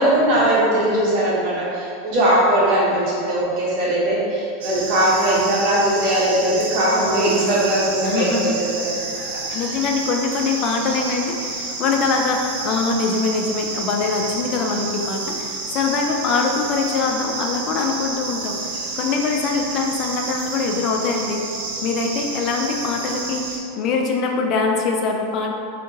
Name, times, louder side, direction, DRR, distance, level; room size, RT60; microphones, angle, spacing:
voice 1, 0.0-9.8 18.7-18.9, right 1 dB, 55° right, -6 dB, 1.1 m, -20 dB
sound 1, 4.6-23.6, right 3 dB, 80° right, 0.5 m, -30 dB
voice 2, 8.0-8.6 9.5-21.4 21.8-23.4 23.8-25.5, left 4 dB, 40° left, 2 dB, 0.3 m, -23 dB
3.4 x 2.8 x 2.8 m, 2.5 s
supercardioid pair, 135°, 0 cm